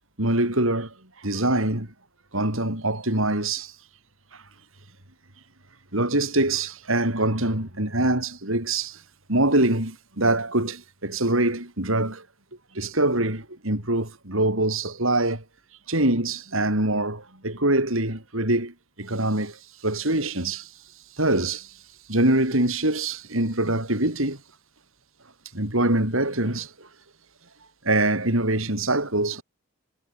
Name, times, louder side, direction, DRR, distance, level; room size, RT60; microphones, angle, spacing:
voice 1, 0.2-0.9 1.2-1.9 2.3-3.7 5.9-9.0 9.3-12.2 12.7-15.4 15.9-20.7 21.2-21.7 22.1-24.4 25.5-26.9 27.8-29.4, right 2 dB, 70° right, 6.7 m, -24 dB
head